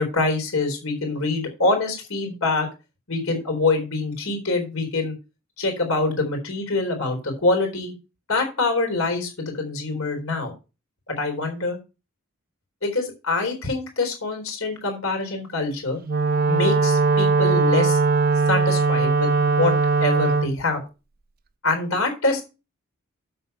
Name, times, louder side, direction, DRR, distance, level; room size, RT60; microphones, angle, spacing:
voice 1, 0.0-2.7 3.1-5.1 5.6-7.9 8.3-10.5 11.1-11.8 12.8-16.0 16.5-18.0 18.5-19.7 20.0-20.8 21.6-22.4, left 3 dB, 80° left, 4 dB, 4.0 m, -25 dB
Wind instrument woodwind instrument, 16.0-20.5, right 4 dB, 45° right, 0.5 m, -20 dB
7.9 x 7.6 x 5.7 m, 0.30 s
head